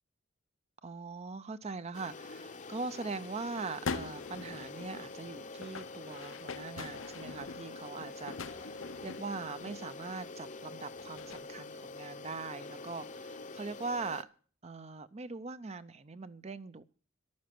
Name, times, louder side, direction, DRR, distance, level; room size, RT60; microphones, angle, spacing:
voice 1, 0.8-14.3 14.6-16.8, right 4 dB, 30° right, 0.6 m, -41 dB
sound 1, 1.9-14.2, left 3 dB, 40° left, 0.8 m, -46 dB
sound 2, 3.6-11.4, left 4 dB, 70° left, 0.8 m, -44 dB
11.5 x 9.6 x 7.6 m
head